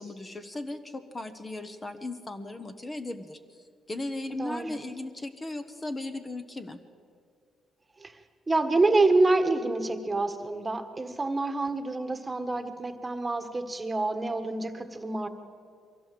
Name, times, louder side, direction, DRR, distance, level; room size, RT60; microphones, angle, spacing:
voice 1, 0.0-3.4 3.9-6.8, left 2 dB, 25° left, 8 dB, 1.2 m, -37 dB
voice 2, 4.4-4.8 8.0-8.2 8.5-15.3, right 2 dB, 20° right, 8 dB, 1.5 m, -27 dB
22.5 x 16.0 x 7.8 m, 2.2 s
cardioid pair, 90°, 0 cm